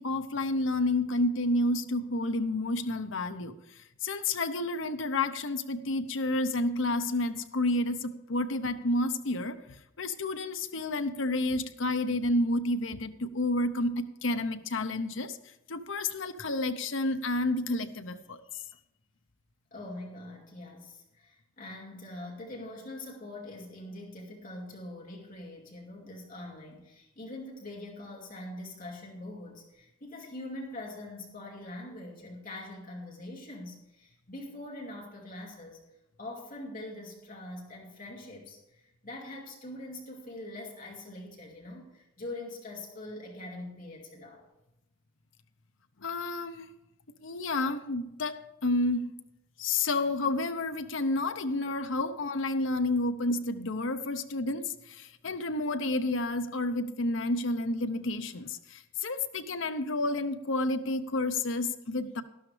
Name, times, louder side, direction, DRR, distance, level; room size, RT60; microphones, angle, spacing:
voice 1, 0.0-3.5 4.0-9.6 10.0-15.4 15.7-18.4 46.0-46.7 47.2-49.1 49.6-62.2, left 2 dB, 65° left, 9 dB, 0.8 m, -30 dB
voice 2, 19.7-35.8 36.2-44.5, left 1 dB, 40° left, -2 dB, 2.4 m, -43 dB
12.5 x 12.0 x 3.3 m, 0.89 s
head